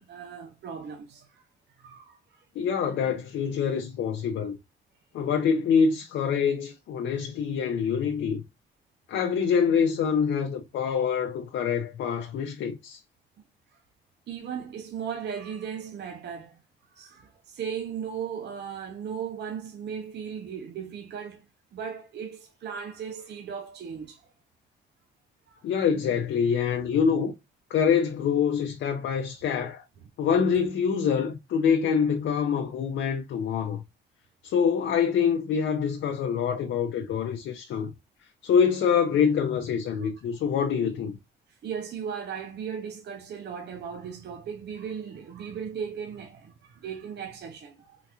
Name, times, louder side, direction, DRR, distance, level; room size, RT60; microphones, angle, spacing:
voice 1, 0.0-1.4 1.8-2.4 14.3-16.6 16.9-21.4 21.7-24.2 25.5-25.6 40.0-40.1 41.6-48.0, right 7 dB, 60° right, 0.7 m, -37 dB
voice 2, 2.6-4.5 5.1-8.4 9.1-13.0 25.6-27.3 27.7-29.8 30.2-33.8 34.4-37.9 38.4-41.2, left 7 dB, 70° left, 0.6 m, -25 dB
3.8 x 2.9 x 2.3 m
cardioid pair, 90°, 20 cm